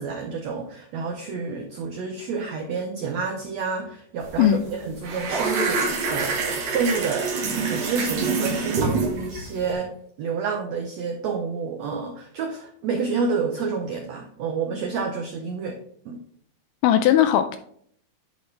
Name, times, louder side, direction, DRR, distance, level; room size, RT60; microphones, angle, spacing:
voice 1, 0.0-9.9 10.2-15.8 16.0-16.2, right 5 dB, 85° right, 2 dB, 1.5 m, -29 dB
sound 1, 4.2-4.4 4.7-9.7, right 4 dB, 55° right, 2.3 m, -26 dB
voice 2, 16.8-17.6, left 11 dB, 80° left, 9 dB, 2.0 m, -18 dB
10.5 x 5.1 x 3.3 m, 0.63 s
omnidirectional pair, 4.1 m